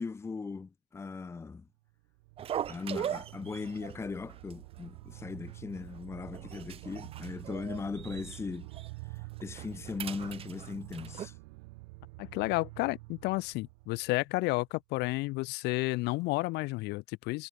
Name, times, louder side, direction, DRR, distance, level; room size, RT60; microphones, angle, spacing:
voice 1, 0.0-1.7 2.7-8.7 9.4-11.4, left 4 dB, 15° left, 1.2 m, -39 dB
sound 1, 1.9-14.7, right 26 dB, 80° right, 2.5 m, -48 dB
sound 2, 2.4-3.9 4.3-4.5 4.8-4.9 5.5-6.0 6.3-8.4 8.7-8.9 9.3-11.3, right 10 dB, 30° right, 1.1 m, -40 dB
voice 2, 12.2-17.5, left 22 dB, 55° left, 2.1 m, -31 dB
cardioid pair, 145°, 20 cm